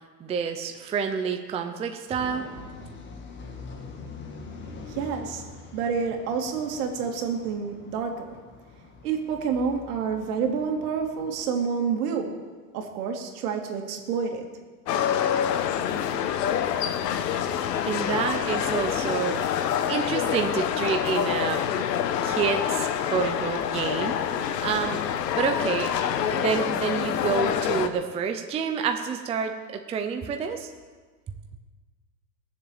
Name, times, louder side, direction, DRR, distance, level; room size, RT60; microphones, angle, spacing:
voice 1, 0.2-2.5 17.8-19.4 19.9-21.6 22.2-24.1 24.6-25.0 25.4-25.9 26.3-30.7, right 6 dB, 15° right, 5 dB, 0.5 m, -28 dB
sound 1, 2.2-11.5, left 4 dB, 25° left, 1.8 m, -44 dB
voice 2, 4.9-5.4 5.7-8.3 9.0-12.3 12.7-14.5, right 6 dB, 65° right, 3 dB, 2.8 m, -28 dB
sound 2, 14.9-27.9, left 9 dB, 75° left, 1.3 m, -26 dB
20.5 x 7.3 x 7.1 m, 1.4 s
supercardioid pair, 140°, 49 cm